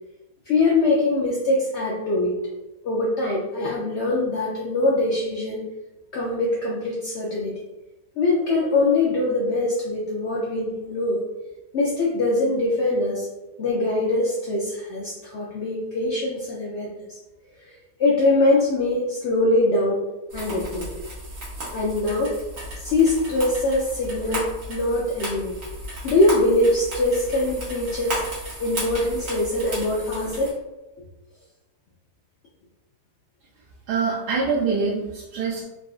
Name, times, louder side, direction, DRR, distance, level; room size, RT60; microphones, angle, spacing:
voice 1, 0.5-2.4 2.8-5.6 6.1-7.5 8.2-11.2 11.7-13.3 13.6-17.2 17.5-20.0 20.3-20.9 21.7-22.3 22.8-25.5 26.0-28.2 28.6-30.6, left 2 dB, 75° left, -4 dB, 0.6 m, -23 dB
sound 1, 20.3-30.5, right 1 dB, 55° right, 1.5 m, -34 dB
voice 2, 33.9-35.6, right 4 dB, 90° right, -5 dB, 1.2 m, -24 dB
3.8 x 2.4 x 2.3 m, 1.0 s
omnidirectional pair, 1.7 m